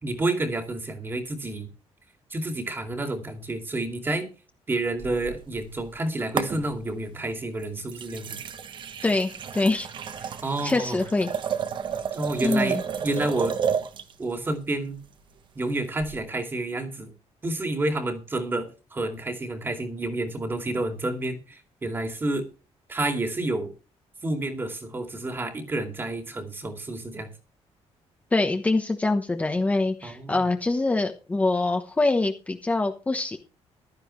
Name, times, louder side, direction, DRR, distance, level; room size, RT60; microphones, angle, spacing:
voice 1, 0.0-1.7 2.3-4.3 4.7-8.4 10.4-11.0 12.1-13.6 14.2-15.0 15.5-17.1 17.4-22.5 22.9-23.7 24.2-27.3 30.0-30.4, right 2 dB, 20° right, 6 dB, 2.4 m, -29 dB
sound 1, 5.0-6.0 6.4-7.0 7.6-14.1 16.0-16.2, right 7 dB, 45° right, 1.3 m, -32 dB
voice 2, 9.0-9.9 10.2-10.3 10.6-11.3 12.4-12.8 28.3-33.4, left 2 dB, 15° left, 5 dB, 1.1 m, -24 dB
15.5 x 12.5 x 3.2 m, 0.32 s
cardioid pair, 165°, 11 cm